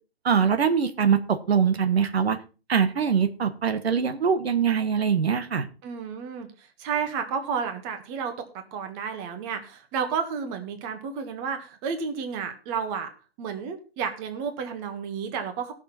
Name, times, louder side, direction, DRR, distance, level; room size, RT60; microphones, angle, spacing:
voice 1, 0.2-2.4 2.7-5.7, right 7 dB, 90° right, 9 dB, 1.3 m, -23 dB
voice 2, 5.8-13.1 13.4-15.7, right 6 dB, 30° right, 7 dB, 1.6 m, -31 dB
17.0 x 6.8 x 4.2 m, 0.33 s
hypercardioid pair, 145°, 30 cm